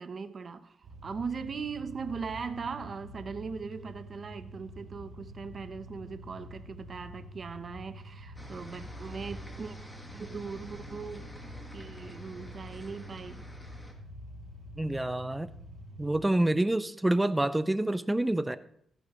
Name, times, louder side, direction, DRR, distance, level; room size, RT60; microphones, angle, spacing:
voice 1, 0.0-9.8 10.1-11.4 11.7-13.4, right 5 dB, 40° right, 0.7 m, -39 dB
sound 1, 0.8-16.1, equal, 65° right, 2.0 m, -47 dB
sound 2, 8.3-13.9, equal, 10° left, 1.6 m, -50 dB
voice 2, 14.8-15.5 16.0-18.6, right 1 dB, 10° right, 0.5 m, -27 dB
14.0 x 11.0 x 3.0 m
wide cardioid pair, 145°, 0 cm